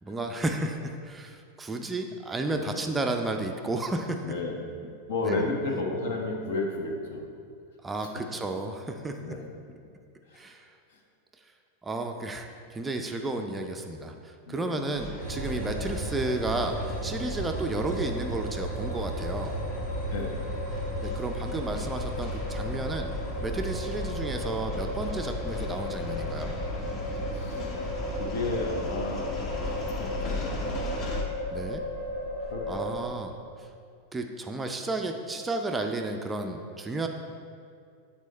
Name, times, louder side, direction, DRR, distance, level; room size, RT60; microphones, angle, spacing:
voice 1, 0.0-4.2 5.2-5.5 7.8-9.3 10.3-10.7 11.8-19.6 21.0-23.1 23.4-26.5 31.5-31.8 32.7-33.3 33.6-33.7 34.1-37.1, right 2 dB, 15° right, 4 dB, 0.4 m, -32 dB
voice 2, 4.2-4.6 5.1-7.3 8.0-8.1 9.0-9.4 10.3-10.4 14.5-14.8 15.4-15.5 20.1-20.4 27.3-27.7 28.1-29.4 29.7-30.8 32.5-33.0, left 3 dB, 55° left, 2 dB, 0.9 m, -33 dB
sound 1, 14.9-31.2, left 2 dB, 30° left, 0.8 m, -38 dB
sound 2, 15.2-32.9, equal, 85° left, 1.8 m, -34 dB
8.1 x 4.2 x 4.2 m, 2.3 s
figure-of-eight pair, 90°, 0 cm